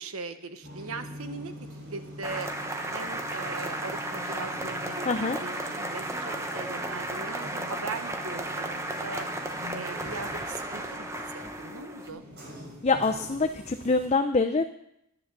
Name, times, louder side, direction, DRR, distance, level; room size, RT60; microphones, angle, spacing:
voice 1, 0.0-1.5 1.9-2.5 2.9-9.3 9.7-12.2, right 4 dB, 80° right, 9 dB, 1.2 m, -39 dB
sound 1, 0.6-14.1, left 1 dB, 50° right, 3.8 m, -44 dB
sound 2, 2.2-12.1, right 1 dB, 15° right, 1.0 m, -34 dB
voice 2, 5.1-5.4 12.8-14.7, left 3 dB, 30° left, 6 dB, 0.6 m, -25 dB
11.0 x 10.0 x 6.8 m, 0.79 s
head